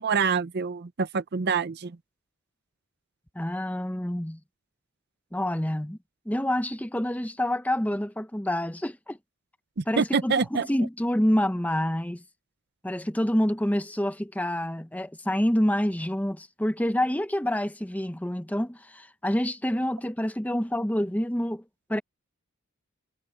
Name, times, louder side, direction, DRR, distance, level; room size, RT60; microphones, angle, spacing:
voice 1, 0.0-2.0 9.8-10.7, right 5 dB, 50° right, 0.6 m, -26 dB
voice 2, 3.3-4.4 5.3-6.0 6.2-9.2 9.9-12.2 12.8-21.6 21.9-22.0, equal, 5° left, 0.9 m, -27 dB
head